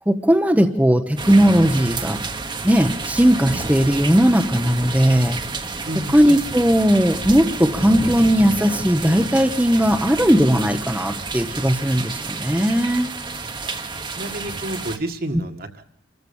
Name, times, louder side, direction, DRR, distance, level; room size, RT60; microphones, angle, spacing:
voice 1, 0.1-2.2 2.6-5.4 6.1-13.1, equal, 10° right, 5 dB, 0.9 m, -17 dB
sound 1, 1.2-15.0, right 3 dB, 25° right, 1.2 m, -30 dB
voice 2, 5.8-6.2 13.7-13.8 14.2-15.8, right 1 dB, 50° right, 6 dB, 1.8 m, -30 dB
27.5 x 14.5 x 7.1 m, 0.69 s
head